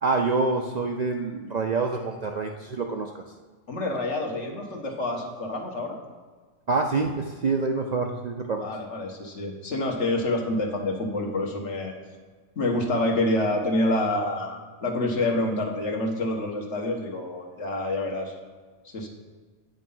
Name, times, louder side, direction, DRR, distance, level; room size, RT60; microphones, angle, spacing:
voice 1, 0.0-3.1 6.7-8.7, right 3 dB, 55° right, 3 dB, 0.5 m, -26 dB
voice 2, 3.7-6.0 8.6-12.0 12.6-18.3 18.9-19.1, left 1 dB, 70° left, 1 dB, 1.6 m, -27 dB
8.6 x 5.3 x 5.5 m, 1.4 s
omnidirectional pair, 1.3 m